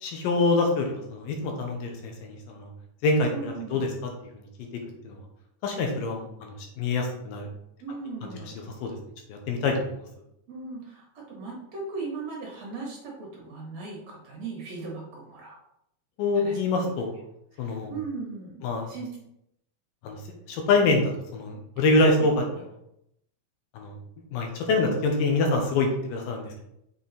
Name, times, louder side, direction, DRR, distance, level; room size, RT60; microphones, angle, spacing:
voice 1, 0.0-2.7 3.0-3.9 4.4-4.5 5.0-5.2 5.6-7.5 8.2-8.3 8.8-8.9 9.3-9.7 16.2-17.1 17.6-17.9 18.6-18.9 20.0-20.2 20.5-22.4 23.8-23.9 24.3-26.6, left 3 dB, 80° left, 2 dB, 2.6 m, -25 dB
voice 2, 3.3-3.9 7.8-8.6 10.5-15.6 16.3-16.9 17.5-19.1 21.8-21.9 22.1-22.3 22.5-22.6, right 4 dB, 60° right, -2 dB, 2.0 m, -38 dB
6.6 x 3.8 x 4.0 m, 0.78 s
omnidirectional pair, 4.0 m